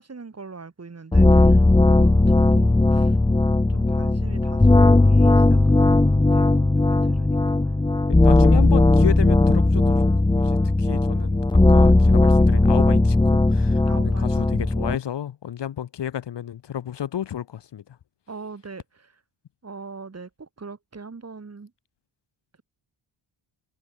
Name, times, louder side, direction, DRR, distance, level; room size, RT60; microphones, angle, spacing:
voice 1, 0.0-3.2 3.7-7.6 13.8-14.3 18.3-19.1 19.6-21.7, right 4 dB, 30° right, 6.6 m, -41 dB
sound 1, 1.1-15.0, left 2 dB, 10° left, 0.8 m, -17 dB
voice 2, 8.1-10.0 10.3-11.4 11.7-17.8, left 10 dB, 55° left, 1.3 m, -32 dB
cardioid pair, 115°, 49 cm